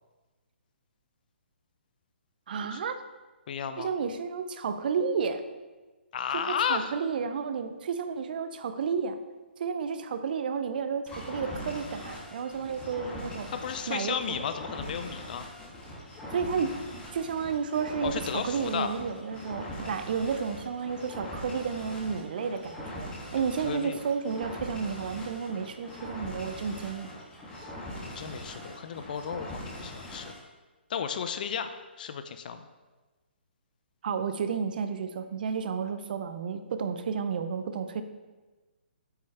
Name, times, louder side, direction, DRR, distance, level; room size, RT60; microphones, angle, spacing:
voice 1, 2.5-2.9 3.8-5.4 6.5-9.2 9.6-13.5 13.9-14.4 16.3-16.7 17.1-27.1 34.0-38.0, right 6 dB, 50° right, 10 dB, 0.7 m, -31 dB
voice 2, 3.5-3.9 6.1-6.9 13.5-15.5 18.0-18.9 23.6-24.0 27.5-27.7 28.0-30.3 30.9-31.7 32.0-32.7, left 7 dB, 50° left, 9 dB, 0.5 m, -33 dB
sound 1, 11.1-30.4, left 1 dB, 15° left, 1.6 m, -42 dB
8.3 x 6.3 x 3.4 m, 1.2 s
figure-of-eight pair, 135°, 6 cm